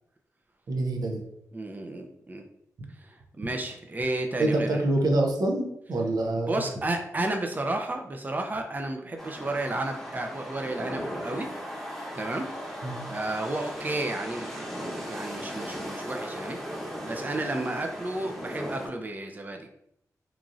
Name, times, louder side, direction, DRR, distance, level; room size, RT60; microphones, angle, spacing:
voice 1, 0.7-1.2 4.4-6.6 12.8-13.0, right 2 dB, 80° right, 1 dB, 0.6 m, -26 dB
voice 2, 1.5-2.4 3.0-4.8 6.5-11.5 12.1-12.5 13.1-16.6 17.0-19.7, right 2 dB, 30° right, 4 dB, 0.4 m, -32 dB
sound 1, 9.2-18.9, equal, 5° left, 1.0 m, -37 dB
3.0 x 2.4 x 2.5 m, 0.77 s
cardioid pair, 50°, 6 cm